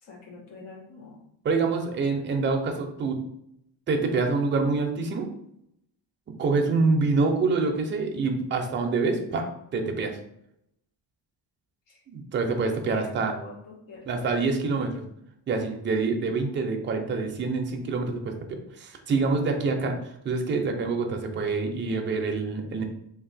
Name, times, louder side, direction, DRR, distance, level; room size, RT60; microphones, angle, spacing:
voice 1, 0.0-1.2 11.9-12.0 12.9-14.3, left 2 dB, 90° left, -3 dB, 1.3 m, -45 dB
voice 2, 1.4-3.2 3.9-5.3 6.4-10.2 12.1-13.3 14.0-15.0 15.5-20.0 20.2-22.8, right 4 dB, 25° right, 3 dB, 0.3 m, -26 dB
2.8 x 2.4 x 3.9 m, 0.76 s
cardioid pair, 165°, 49 cm